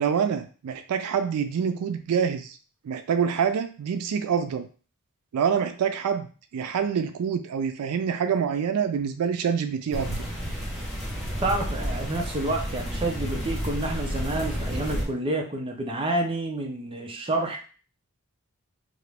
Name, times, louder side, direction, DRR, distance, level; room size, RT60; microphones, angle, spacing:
voice 1, 0.0-2.6 2.8-4.7 5.3-6.3 6.5-10.3, right 7 dB, 80° right, 8 dB, 0.3 m, -26 dB
sound 1, 9.9-15.0, equal, ahead, 0.9 m, -31 dB
voice 2, 11.4-17.6, right 2 dB, 25° right, 2 dB, 0.5 m, -29 dB
2.8 x 2.5 x 3.3 m, 0.38 s
head